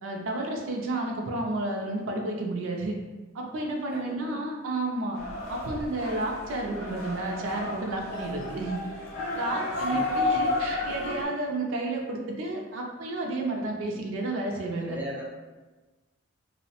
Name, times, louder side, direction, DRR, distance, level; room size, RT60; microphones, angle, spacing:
voice 1, 0.0-2.9 3.3-5.2 5.5-8.8 9.3-15.0, right 2 dB, 70° right, 0 dB, 0.4 m, -31 dB
voice 2, 3.9-4.5 4.9-5.0 9.8-10.4 14.8-15.2, equal, 10° right, -5 dB, 0.5 m, -38 dB
sound 1, 5.1-11.2, left 2 dB, 85° left, 0.5 m, -32 dB
2.7 x 2.0 x 2.8 m, 1.2 s
head